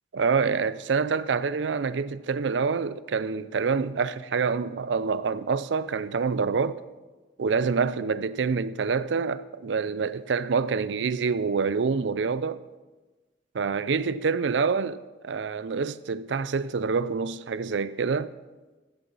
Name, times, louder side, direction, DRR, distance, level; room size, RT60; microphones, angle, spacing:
voice 1, 0.1-6.8 7.4-12.6 13.5-18.3, right 5 dB, 80° right, 0.5 m, -26 dB
14.5 x 7.0 x 5.4 m
head